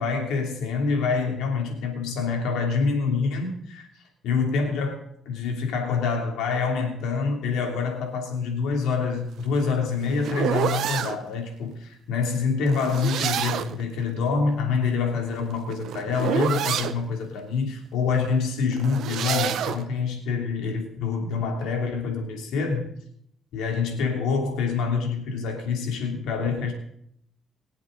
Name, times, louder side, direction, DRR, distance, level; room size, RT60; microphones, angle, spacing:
voice 1, 0.0-3.9 4.2-22.9 23.5-26.7, left 5 dB, 90° left, 2 dB, 2.9 m, -26 dB
sound 1, 9.4-11.2 12.7-13.8 15.2-17.0 18.7-19.8, right 9 dB, 75° right, 0.9 m, -28 dB
23.0 x 8.0 x 3.9 m, 0.70 s
cardioid pair, 90°, 0 cm